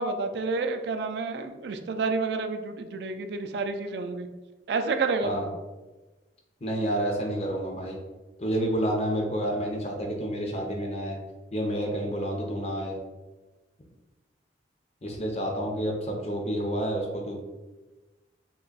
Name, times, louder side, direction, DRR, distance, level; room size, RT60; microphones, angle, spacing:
voice 1, 0.0-4.3 4.7-5.5, right 3 dB, 65° right, 7 dB, 0.3 m, -29 dB
voice 2, 6.6-8.0 8.4-11.2 11.5-13.0 15.0-17.4, right 1 dB, 35° left, 0 dB, 0.6 m, -29 dB
3.1 x 2.3 x 3.8 m, 1.2 s
head